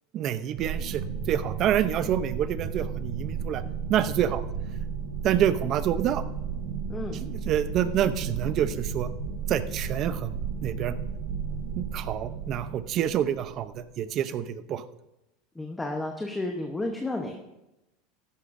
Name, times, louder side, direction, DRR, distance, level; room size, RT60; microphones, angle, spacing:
voice 1, 0.1-3.6 3.9-4.4 5.2-6.2 7.5-9.1 9.5-10.9 11.8-14.8, right 10 dB, 40° right, 13 dB, 0.6 m, -27 dB
sound 1, 0.5-13.8, right 6 dB, 85° right, 1.6 m, -33 dB
voice 2, 6.9-7.2 15.5-17.4, left 2 dB, 10° left, 2 dB, 1.0 m, -32 dB
15.0 x 11.0 x 2.6 m, 0.94 s
supercardioid pair, 135°, 0 cm